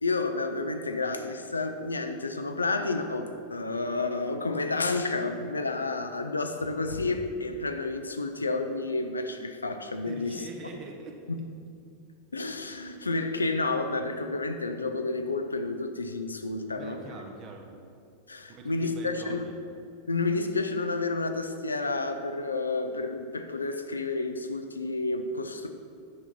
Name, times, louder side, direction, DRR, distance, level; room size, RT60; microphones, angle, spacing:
voice 1, 0.0-10.4 11.3-11.4 12.3-17.0 18.3-19.5 20.1-25.7, left 3 dB, 80° left, 7 dB, 0.5 m, -30 dB
voice 2, 10.0-11.2 16.7-17.7 18.5-19.5, right 3 dB, 35° right, 3 dB, 1.0 m, -44 dB
9.4 x 5.9 x 4.1 m, 2.5 s
figure-of-eight pair, 90°, 0 cm